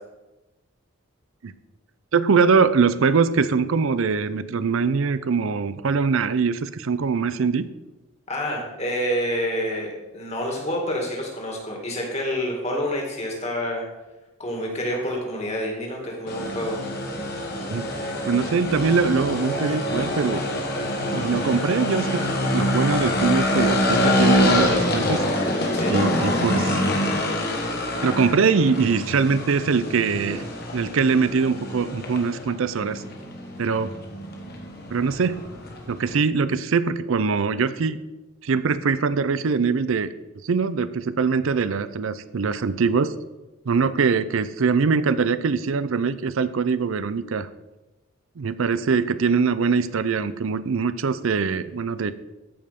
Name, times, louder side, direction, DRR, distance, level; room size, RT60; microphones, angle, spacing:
voice 1, 2.1-7.7 17.7-20.4 21.1-25.2 25.9-26.9 28.0-30.4 30.7-33.0 33.6-33.9 34.9-35.4 35.9-38.0 38.4-40.1 40.4-43.1 43.7-47.5 48.4-52.1, right 5 dB, 70° right, 14 dB, 0.5 m, -22 dB
voice 2, 8.3-13.9 14.4-16.8 25.7-26.0, equal, 30° left, 0 dB, 2.2 m, -28 dB
sound 1, 16.3-36.1, left 1 dB, 45° left, 1.6 m, -25 dB
14.0 x 5.4 x 5.2 m, 1.1 s
head